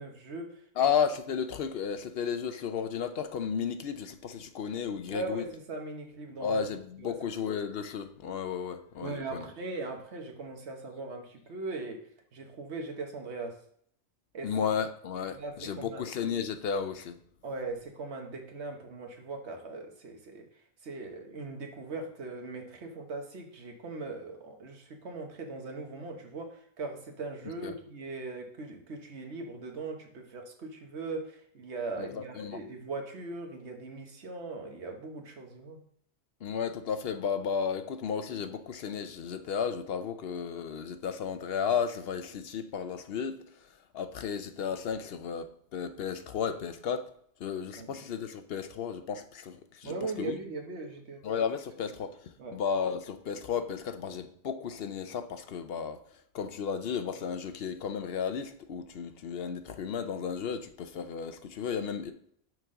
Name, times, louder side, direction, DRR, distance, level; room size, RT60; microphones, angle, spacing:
voice 1, 0.0-0.6 5.1-6.6 7.0-7.1 9.0-12.1 12.3-13.6 14.3-14.5 15.3-16.0 17.4-20.5 20.8-35.8 47.8-48.0 49.8-51.2 52.4-52.6, right 3 dB, 70° right, 1.3 m, -39 dB
voice 2, 0.8-5.4 6.4-9.5 14.4-17.2 27.6-27.7 32.0-32.6 36.4-43.4 43.9-47.1 47.4-50.4 51.2-52.2 52.5-56.0 56.3-62.1, left 7 dB, 60° left, 0.8 m, -33 dB
6.1 x 6.0 x 3.7 m
omnidirectional pair, 1.2 m